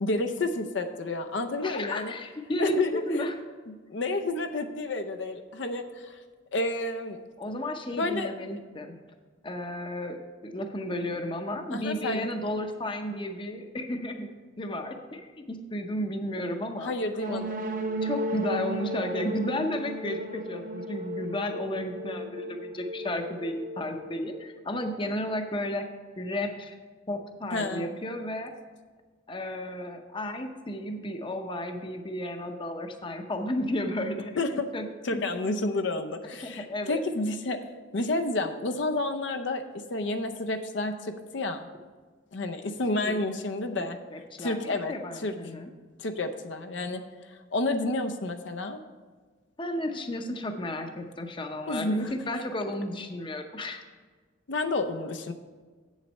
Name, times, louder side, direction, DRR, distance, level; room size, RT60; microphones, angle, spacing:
voice 1, 0.0-2.1 2.6-3.3 3.7-6.2 6.5-7.2 8.0-8.3 11.7-12.3 16.8-17.6 27.5-28.0 34.4-34.7 35.0-37.6 37.9-39.6 39.9-41.7 42.3-44.0 44.4-45.3 46.0-47.0 47.3-48.8 51.7-52.1 54.5-55.3, left 2 dB, 65° left, 6 dB, 0.6 m, -30 dB
voice 2, 1.6-3.4 7.4-9.0 9.4-10.2 10.4-14.3 14.6-16.9 17.3-17.5 18.0-25.9 26.2-26.7 27.1-28.5 29.3-34.3 34.7-34.9 35.1-35.3 36.4-37.0 43.0-43.2 43.7-43.8 44.1-45.7 49.6-53.8, left 1 dB, 25° left, 5 dB, 0.7 m, -33 dB
sound 1, 17.2-24.9, right 1 dB, 45° right, 0.7 m, -35 dB
8.2 x 7.2 x 5.3 m, 1.4 s
head